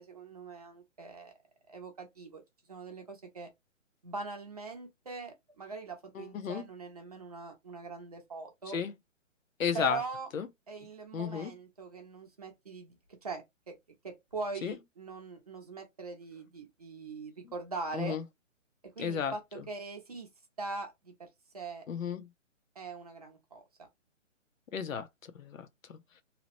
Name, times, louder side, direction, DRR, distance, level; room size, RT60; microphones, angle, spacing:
voice 1, 0.0-1.3 1.7-2.4 2.7-3.5 4.0-8.8 9.7-10.3 10.7-12.9 13.2-13.7 14.0-18.2 19.0-20.3 20.6-21.3 21.5-21.8 22.8-23.9, right 3 dB, 30° right, 0.6 m, -42 dB
voice 2, 6.1-6.6 8.7-8.9 9.6-10.0 10.3-10.5 11.1-11.5 14.6-14.8 17.4-17.5 17.9-18.2 19.0-19.6 21.9-22.3 24.7-25.1 25.3-26.0, left 7 dB, 90° left, 0.7 m, -33 dB
2.8 x 2.0 x 2.9 m
hypercardioid pair, 170°, 39 cm